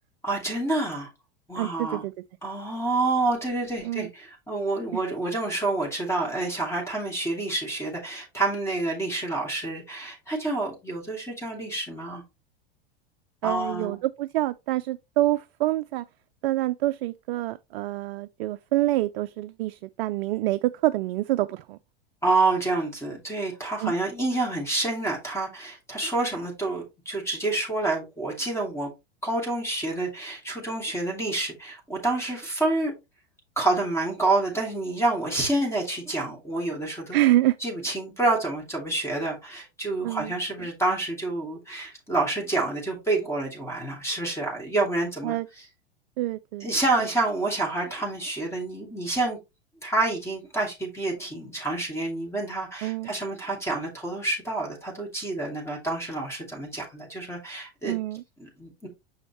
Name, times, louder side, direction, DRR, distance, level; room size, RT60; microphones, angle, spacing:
voice 1, 0.2-1.1 1.5-2.0 2.4-12.2 13.4-14.0 22.2-28.9 29.2-32.9 33.6-37.2 37.6-45.6 46.6-49.4 49.8-57.9 58.4-58.9, right 2 dB, 10° left, 2.7 m, -28 dB
voice 2, 1.6-2.1 3.8-4.1 4.9-5.0 13.4-16.0 16.4-21.8 23.8-23.9 37.1-37.6 40.0-40.3 45.2-45.5 46.2-46.7 52.8-53.1 57.8-58.2, right 16 dB, 65° right, 0.5 m, -26 dB
6.4 x 5.0 x 3.0 m
hypercardioid pair, 100°, 31 cm